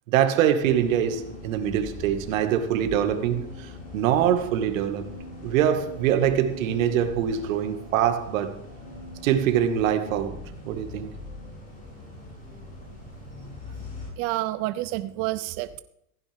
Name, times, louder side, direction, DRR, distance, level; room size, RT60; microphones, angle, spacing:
voice 1, 0.1-5.1 5.4-8.5 9.2-10.4 10.7-11.1, right 9 dB, 75° right, 2.0 m, -24 dB
sound 1, 0.6-14.1, left 2 dB, 20° left, 5.9 m, -41 dB
voice 2, 14.2-15.8, right 16 dB, 35° right, 0.5 m, -29 dB
16.0 x 15.5 x 3.6 m
supercardioid pair, 150°, 40 cm